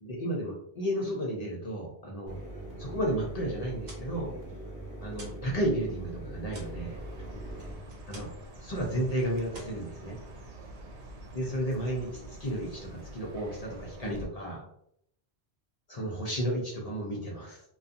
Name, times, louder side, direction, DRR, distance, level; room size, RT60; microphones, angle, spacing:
voice 1, 0.0-2.4 2.8-4.4 5.0-7.0 8.1-8.3 8.6-10.2 11.3-14.7 15.9-17.6, right 1 dB, 50° left, -3 dB, 0.5 m, -33 dB
Mechanisms, 2.3-7.7, right 1 dB, 20° right, 0.8 m, -42 dB
sound 1, 3.8-5.5 5.8-8.5 8.8-9.1 9.5-10.6, right 1 dB, 50° right, 0.8 m, -51 dB
Chirp tweet, 6.5-14.3, right 1 dB, 90° right, 0.9 m, -46 dB
2.6 x 2.3 x 2.4 m, 0.73 s
omnidirectional pair, 1.1 m